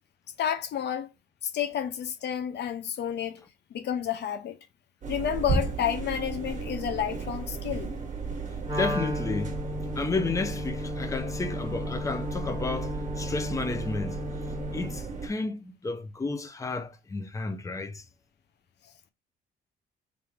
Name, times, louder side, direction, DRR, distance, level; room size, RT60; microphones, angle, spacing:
voice 1, 0.4-1.1 1.4-3.4 3.7-4.6 5.1-8.0, left 9 dB, 60° left, 0.5 m, -30 dB
sound 1, 5.0-15.3, right 4 dB, 35° right, 1.3 m, -34 dB
voice 2, 8.7-9.5 10.0-14.2 14.7-18.0, left 3 dB, 15° left, 0.6 m, -32 dB
Wind instrument woodwind instrument, 8.7-15.0, left 3 dB, 15° right, 1.4 m, -36 dB
3.4 x 2.6 x 4.5 m
cardioid pair, 90°, 20 cm